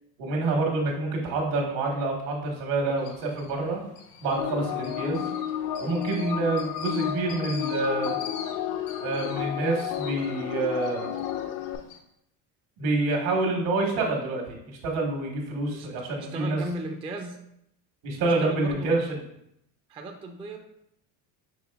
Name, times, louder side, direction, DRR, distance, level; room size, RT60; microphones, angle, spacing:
voice 1, 0.2-3.8 4.2-5.3 5.8-8.2 9.0-11.2 12.8-16.6 18.0-19.1, right 2 dB, 75° right, 0 dB, 1.4 m, -27 dB
sound 1, 3.0-12.0, left 6 dB, 75° left, 0.8 m, -46 dB
sound 2, 4.4-11.8, left 10 dB, 50° left, 0.5 m, -32 dB
voice 2, 16.2-17.4 18.2-18.9 19.9-20.6, right 2 dB, 15° right, 3 dB, 0.3 m, -37 dB
5.7 x 3.2 x 2.3 m, 0.77 s
supercardioid pair, 100°, 45 cm